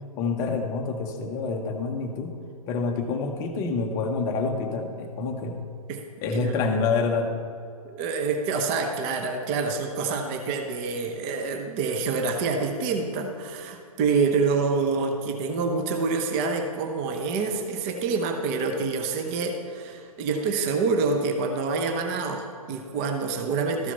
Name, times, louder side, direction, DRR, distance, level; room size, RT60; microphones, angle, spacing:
voice 1, 0.2-2.3 2.7-5.6 6.2-7.3, left 4 dB, 15° left, 4 dB, 0.7 m, -27 dB
voice 2, 7.8-23.9, right 4 dB, 20° right, 5 dB, 0.6 m, -27 dB
13.0 x 7.2 x 4.1 m, 2.5 s
figure-of-eight pair, 125°, 19 cm